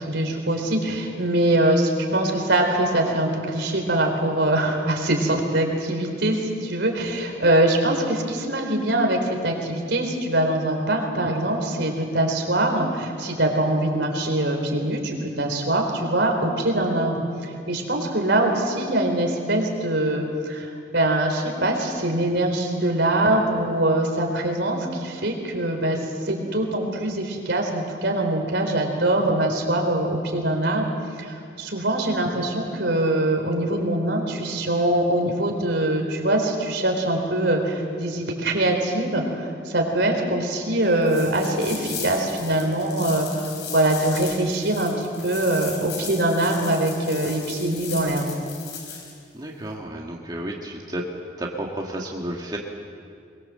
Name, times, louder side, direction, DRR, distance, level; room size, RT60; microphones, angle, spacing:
voice 1, 0.1-26.0 26.2-30.9 31.2-43.3 43.7-48.3, right 1 dB, 70° right, 2 dB, 4.2 m, -23 dB
sound 1, 41.0-49.1, left 6 dB, 65° left, 5.8 m, -37 dB
voice 2, 49.3-51.0 51.4-52.6, right 1 dB, 20° right, -2 dB, 1.8 m, -32 dB
22.5 x 22.5 x 7.7 m, 2.3 s
head